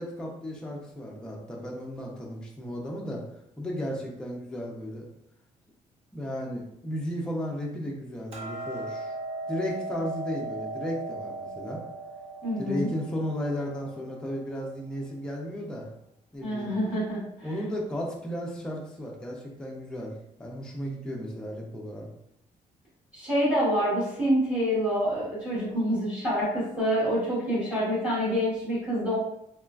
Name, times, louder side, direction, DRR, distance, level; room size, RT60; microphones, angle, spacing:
voice 1, 0.0-3.2 3.6-5.0 6.1-9.1 9.5-11.8 12.6-15.9 16.3-16.7 17.4-22.1, equal, 5° left, -2 dB, 0.4 m, -34 dB
Hammer, 8.3-14.5, right 2 dB, 50° right, 0.6 m, -37 dB
voice 2, 12.4-12.9 16.4-17.5 23.1-29.2, equal, 10° right, -11 dB, 1.0 m, -27 dB
3.0 x 2.4 x 2.3 m, 0.79 s
cardioid pair, 175°, 13 cm